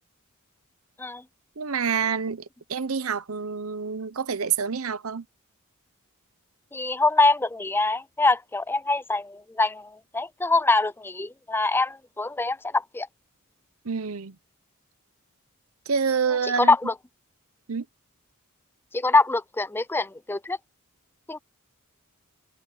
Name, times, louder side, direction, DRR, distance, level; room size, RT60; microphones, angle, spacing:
voice 1, 1.6-2.4 2.7-5.2 13.8-14.3 15.9-16.7 17.7-17.8, right 6 dB, 70° right, 0.8 m, -27 dB
voice 2, 6.7-13.1 16.4-16.9 18.9-20.6 21.3-21.4, left 3 dB, 10° left, 0.4 m, -24 dB
head